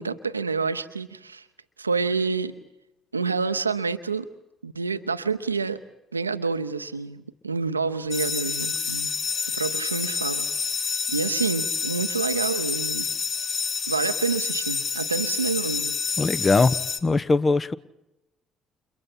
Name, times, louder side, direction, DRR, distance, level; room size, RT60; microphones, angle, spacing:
voice 1, 0.0-1.4 1.8-2.5 3.1-4.3 4.6-5.8 6.1-9.1 9.5-13.1 13.9-16.0, right 4 dB, 85° right, 0.8 m, -28 dB
sound 1, 8.1-17.0, left 6 dB, 50° left, 1.8 m, -28 dB
voice 2, 16.2-17.7, left 3 dB, 30° left, 1.0 m, -21 dB
30.0 x 29.5 x 4.4 m
figure-of-eight pair, 50°, 0 cm